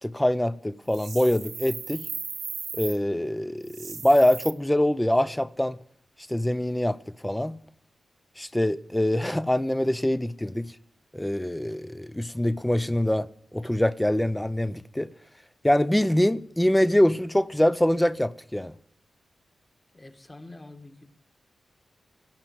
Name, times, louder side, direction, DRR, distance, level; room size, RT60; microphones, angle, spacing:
voice 1, 0.0-2.1 2.7-5.8 6.3-7.6 8.4-10.7 11.1-15.1 15.6-18.7, left 1 dB, 10° left, 0.5 m, -24 dB
sound 1, 0.9-3.0 3.6-4.5, right 5 dB, 70° right, 0.8 m, -37 dB
voice 2, 19.9-21.1, left 2 dB, 25° left, 1.7 m, -46 dB
16.5 x 5.9 x 9.1 m
cardioid pair, 55°, 0 cm